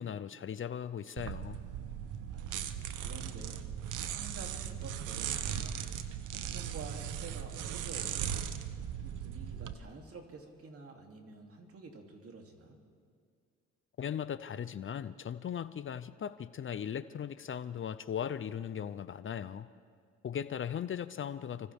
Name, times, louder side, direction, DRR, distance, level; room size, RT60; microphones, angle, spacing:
voice 1, 0.0-1.6 14.0-19.7 20.2-21.7, left 8 dB, 40° left, 14 dB, 0.6 m, -38 dB
sound 1, 1.2-9.7, right 9 dB, 85° right, 1.0 m, -38 dB
voice 2, 2.0-3.7 4.1-5.8 6.2-12.8, right 3 dB, 50° right, 1 dB, 3.1 m, -50 dB
29.5 x 24.5 x 3.6 m, 2.1 s
cardioid pair, 90°, 30 cm